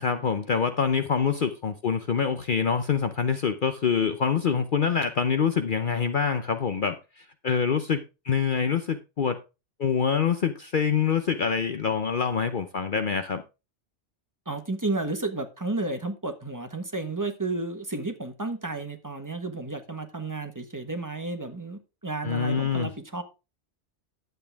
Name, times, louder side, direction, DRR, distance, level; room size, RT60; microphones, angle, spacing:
voice 1, 0.0-9.4 9.8-13.4 22.2-22.9, left 6 dB, 50° left, 0.8 m, -25 dB
voice 2, 14.5-23.2, right 2 dB, 15° right, 1.3 m, -32 dB
10.5 x 8.1 x 3.5 m
omnidirectional pair, 1.2 m